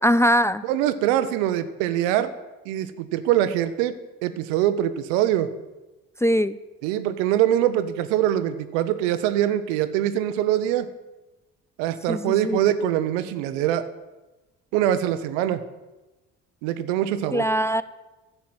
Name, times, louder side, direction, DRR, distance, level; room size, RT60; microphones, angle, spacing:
voice 1, 0.0-0.6 6.2-6.6 12.1-12.6 17.3-17.8, equal, 10° left, 14 dB, 0.4 m, -21 dB
voice 2, 0.6-2.3 2.6-3.9 4.2-5.5 6.8-10.9 11.8-13.9 14.7-15.6 16.6-17.5, right 11 dB, 80° right, 13 dB, 0.8 m, -23 dB
10.5 x 7.0 x 7.7 m, 1.1 s
hypercardioid pair, 60°, 36 cm